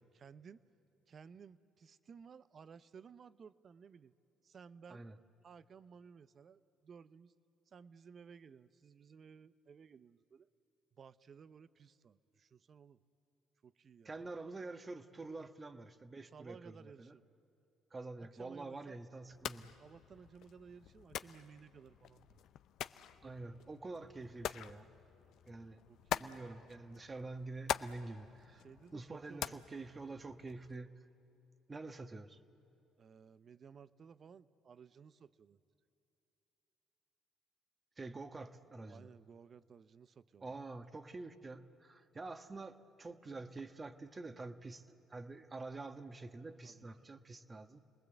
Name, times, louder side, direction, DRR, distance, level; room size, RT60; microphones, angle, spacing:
voice 1, 0.1-0.6 1.1-4.1 4.4-5.1 5.4-7.3 7.7-10.5 10.9-13.0 13.6-14.2 15.4-15.5 16.2-17.2 18.2-19.0 19.7-22.4 23.2-23.5 25.9-26.5 28.5-29.5 33.0-35.6 38.9-40.6 46.6-47.1, right 6 dB, 50° right, 15 dB, 0.7 m, -57 dB
voice 2, 14.0-17.1 17.9-19.7 23.2-24.9 25.5-25.8 26.2-28.6 28.9-31.0 31.7-32.4 38.0-39.1 40.4-47.8, right 3 dB, 25° right, 9 dB, 1.3 m, -47 dB
sound 1, 19.3-30.8, left 11 dB, 70° left, 0.6 m, -45 dB
29.5 x 20.0 x 8.1 m, 3.0 s
supercardioid pair, 70°, 0 cm